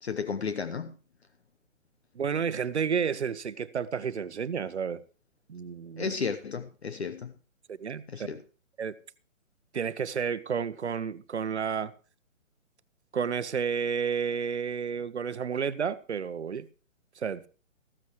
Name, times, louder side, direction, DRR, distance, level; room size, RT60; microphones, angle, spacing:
voice 1, 0.0-0.9 6.0-7.3 8.1-8.4, left 5 dB, 55° left, 0.9 m, -33 dB
voice 2, 2.1-5.0 5.5-6.1 7.7-8.3 8.8-8.9 9.7-11.9 13.1-16.7 17.2-17.5, right 6 dB, 55° right, 0.9 m, -31 dB
15.0 x 14.0 x 3.1 m
hypercardioid pair, 180°, 40 cm